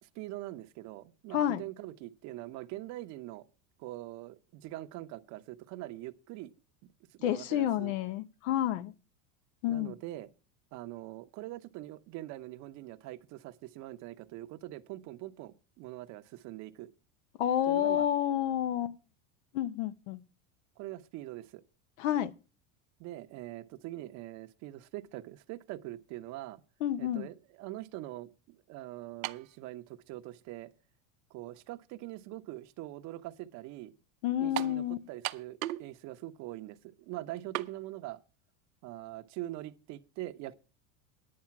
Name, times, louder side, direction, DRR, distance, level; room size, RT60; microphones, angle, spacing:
voice 1, 0.0-3.4 3.8-6.5 7.2-7.9 9.7-10.3 10.7-16.9 17.7-18.1 20.8-21.6 23.0-26.6 27.0-30.7 31.3-33.9 34.4-38.2 38.8-40.5, right 16 dB, 45° right, 0.8 m, -43 dB
voice 2, 1.3-1.6 7.2-8.9 9.6-9.9 17.4-18.9 19.5-20.2 22.0-22.3 26.8-27.3 34.2-35.0, left 11 dB, 70° left, 0.9 m, -29 dB
sound 1, 29.2-29.5 30.4-30.5 34.6-34.8 35.2-35.9 36.2-36.3 37.5-37.7, right 17 dB, 90° right, 0.7 m, -35 dB
10.5 x 8.6 x 5.8 m
supercardioid pair, 145°, 40 cm